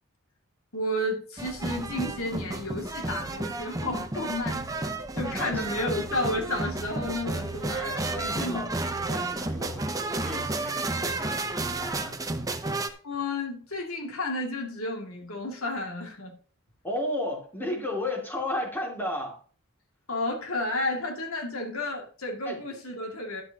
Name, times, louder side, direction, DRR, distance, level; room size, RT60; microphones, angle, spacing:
voice 1, 0.7-8.7 13.0-16.3 20.1-23.4, left 1 dB, 85° left, 2 dB, 2.5 m, -32 dB
sound 1, 1.4-12.9, right 2 dB, 15° right, 0.7 m, -32 dB
voice 2, 5.2-6.0 7.7-12.2 16.8-19.4 22.4-22.6, left 1 dB, 10° left, 0 dB, 2.6 m, -34 dB
11.5 x 11.0 x 3.0 m, 0.41 s
head